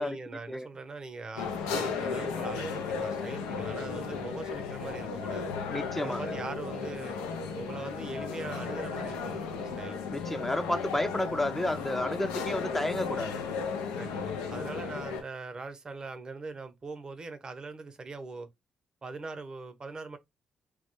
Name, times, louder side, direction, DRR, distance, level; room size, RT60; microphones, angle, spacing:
voice 1, 0.0-5.5 6.0-7.2 7.5-10.0 14.0-18.5 19.0-20.2, right 3 dB, 40° right, 0.6 m, -41 dB
sound 1, 1.4-15.2, left 5 dB, 85° left, 0.4 m, -35 dB
voice 2, 5.7-6.4 10.1-13.4, left 1 dB, 10° left, 0.5 m, -31 dB
2.2 x 2.0 x 2.9 m
hypercardioid pair, 45°, 2 cm